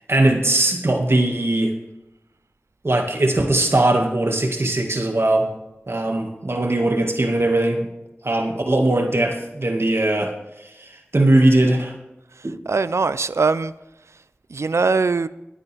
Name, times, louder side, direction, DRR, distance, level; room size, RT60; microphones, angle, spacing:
voice 1, 0.1-1.7 2.8-5.5 5.9-7.9 8.2-10.4 10.8-12.0 12.4-12.6, right 1 dB, 60° right, 3 dB, 1.9 m, -20 dB
voice 2, 12.7-13.7 14.5-15.3, right 4 dB, 90° right, 15 dB, 0.4 m, -21 dB
19.5 x 8.4 x 3.5 m, 0.93 s
wide cardioid pair, 40°, 5 cm